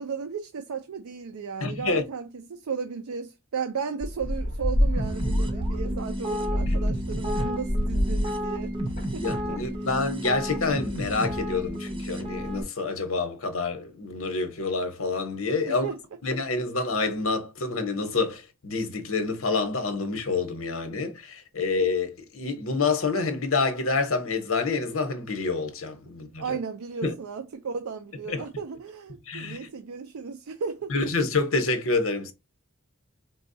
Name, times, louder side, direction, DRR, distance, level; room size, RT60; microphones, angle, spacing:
voice 1, 0.0-9.6 15.6-16.0 26.4-30.9, right 6 dB, 85° right, 0.4 m, -35 dB
voice 2, 1.6-2.0 6.7-6.8 9.2-15.8 16.2-26.6 27.0-27.1 28.3-28.4 29.3-29.7 30.9-32.3, left 3 dB, 75° left, 0.9 m, -27 dB
sound 1, 4.0-9.5, equal, 35° left, 0.9 m, -27 dB
sound 2, 5.0-12.6, equal, 25° right, 0.7 m, -32 dB
4.1 x 2.3 x 2.6 m
head